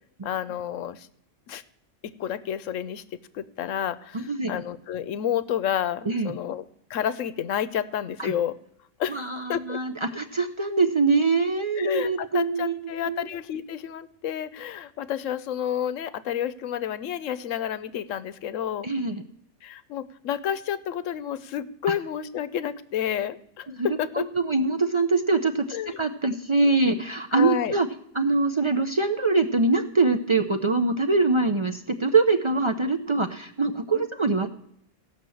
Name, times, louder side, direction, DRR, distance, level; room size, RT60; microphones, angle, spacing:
voice 1, 0.2-1.1 1.5-1.6 2.0-8.6 9.0-9.8 11.8-18.9 19.6-24.3 25.7-26.0 27.3-27.8 33.9-34.1, left 10 dB, 85° left, 15 dB, 1.0 m, -30 dB
voice 2, 4.1-4.6 6.1-6.3 8.2-8.3 9.1-12.7 13.0-13.3 18.8-19.2 23.8-23.9 24.1-27.9 28.1-34.5, right 3 dB, 45° right, 7 dB, 0.4 m, -23 dB
15.5 x 5.9 x 7.6 m, 0.70 s
omnidirectional pair, 1.3 m